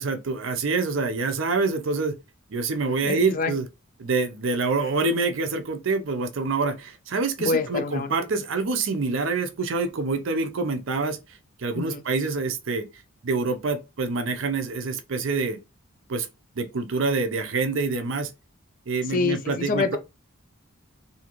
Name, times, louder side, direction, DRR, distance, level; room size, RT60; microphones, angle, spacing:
voice 1, 0.0-2.2 2.5-3.7 4.0-11.2 11.6-12.9 13.2-15.6 16.1-16.3 16.6-18.3 18.9-20.0, right 3 dB, 60° right, 0.5 m, -26 dB
voice 2, 3.0-3.6 7.4-8.1 11.7-12.0 19.1-20.0, left 4 dB, 40° left, 0.4 m, -26 dB
2.7 x 2.5 x 2.9 m
head